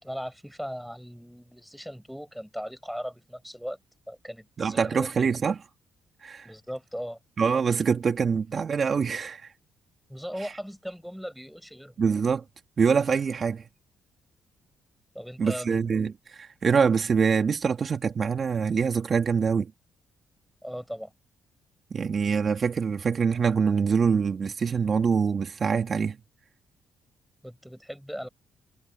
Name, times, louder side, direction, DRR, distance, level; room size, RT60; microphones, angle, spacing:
voice 1, 0.0-3.8 4.1-5.4 6.4-7.2 10.1-12.1 15.1-16.0 20.6-21.1 27.4-28.3, equal, ahead, 5.0 m, -38 dB
voice 2, 4.6-5.6 6.2-6.5 7.4-9.5 10.4-10.5 12.0-12.4 12.8-13.6 15.4-19.7 21.9-26.2, right 6 dB, 45° right, 1.9 m, -25 dB
cardioid pair, 90°, 0 cm